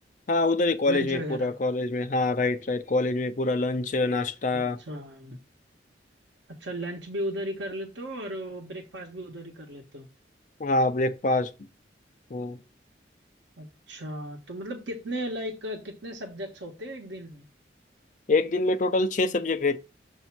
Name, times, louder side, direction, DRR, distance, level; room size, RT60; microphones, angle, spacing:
voice 1, 0.3-4.8 10.6-11.5 12.3-12.6 18.3-19.8, left 2 dB, 45° left, 0.5 m, -25 dB
voice 2, 0.9-1.5 4.5-5.4 6.5-10.1 13.6-17.4, right 1 dB, 85° right, 1.0 m, -36 dB
7.1 x 2.7 x 5.8 m
head